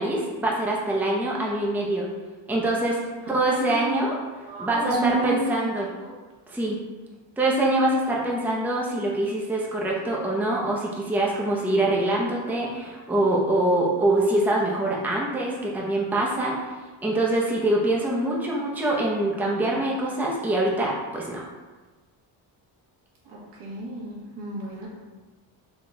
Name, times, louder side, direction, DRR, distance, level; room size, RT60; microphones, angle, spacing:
voice 1, 0.0-2.1 2.5-3.0 3.3-4.2 4.6-5.9 6.5-6.8 7.4-16.6 17.0-21.4, right 1 dB, 5° right, -3 dB, 0.6 m, -24 dB
voice 2, 3.2-4.0 4.4-5.5 5.8-6.1 23.2-24.9, right 3 dB, 65° right, -4 dB, 1.4 m, -32 dB
3.9 x 3.0 x 3.8 m, 1.3 s
cardioid pair, 100°, 45 cm